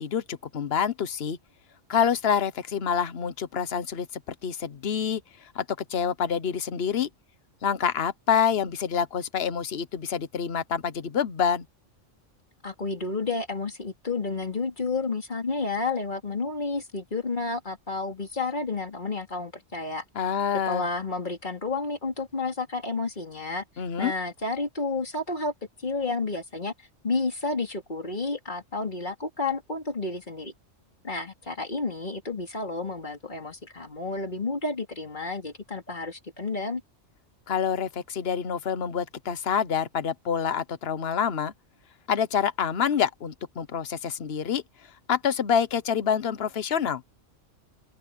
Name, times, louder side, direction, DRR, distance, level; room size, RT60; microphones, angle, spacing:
voice 1, 0.0-1.4 1.9-5.6 5.9-7.1 7.6-11.6 20.1-20.8 23.8-24.1 37.5-41.5 42.1-44.6 45.1-47.0, left 7 dB, 55° left, 1.2 m, -27 dB
voice 2, 12.6-20.0 20.7-23.6 24.0-25.5 25.8-26.7 27.0-30.5 31.0-36.8, left 3 dB, 40° left, 3.1 m, -31 dB
open air
omnidirectional pair, 1.3 m